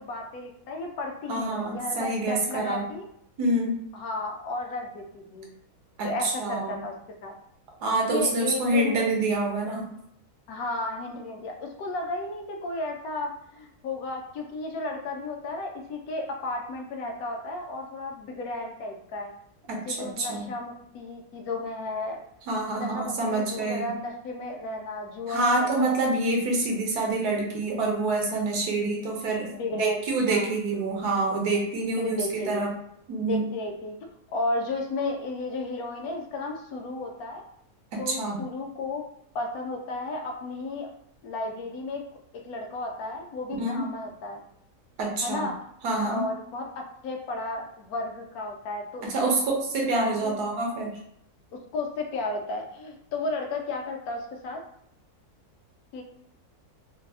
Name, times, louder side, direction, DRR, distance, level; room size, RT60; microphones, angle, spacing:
voice 1, 0.0-3.0 3.9-5.5 6.0-6.9 7.2-7.3 8.1-9.0 10.5-19.3 19.8-22.2 22.7-26.0 29.5-30.5 32.0-32.7 33.3-34.0 34.3-37.4 38.0-39.0 39.3-40.9 41.2-42.0 42.4-44.4 45.2-45.6 46.0-49.4 49.9-50.3 51.7-54.6 55.9-56.0, left 2 dB, 75° left, 2 dB, 1.0 m, -33 dB
voice 2, 1.3-2.9 3.4-3.7 6.0-6.8 7.8-9.9 19.7-20.5 22.5-23.9 25.3-29.5 29.8-32.7 33.1-33.4 38.1-38.4 43.6-43.8 45.0-45.5 45.8-46.3 49.0-51.0, right 2 dB, 90° right, 0 dB, 1.3 m, -26 dB
3.5 x 2.3 x 2.3 m, 0.71 s
omnidirectional pair, 1.6 m